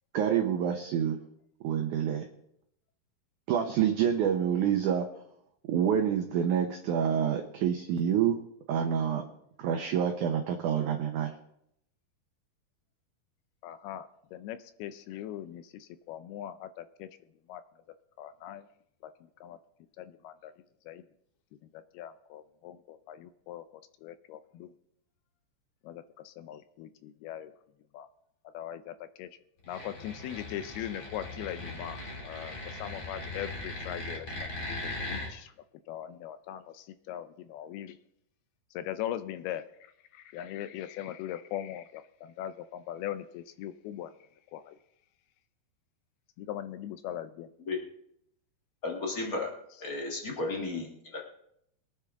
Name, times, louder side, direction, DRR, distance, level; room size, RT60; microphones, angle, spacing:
voice 1, 0.1-1.2 1.6-2.3 3.5-5.1 5.7-8.4 8.7-9.3 9.6-11.3, right 8 dB, 75° right, 4 dB, 1.9 m, -27 dB
voice 2, 13.6-17.1 17.5-17.6 18.2-18.7 19.0-19.1 19.4-19.6 20.0-20.5 20.9-21.0 21.7-23.7 24.0-24.7 25.8-27.5 27.9-28.1 28.5-29.3 29.7-34.5 34.8-35.5 35.9-38.0 38.7-44.1 44.5-44.8 46.4-47.5, left 11 dB, 80° left, 12 dB, 2.4 m, -40 dB
sound 1, 29.6-35.3, left 2 dB, 35° left, 3.0 m, -39 dB
voice 3, 48.8-49.5 49.8-51.3, left 3 dB, 60° left, 0 dB, 0.9 m, -34 dB
22.5 x 9.8 x 3.6 m, 0.75 s
omnidirectional pair, 4.6 m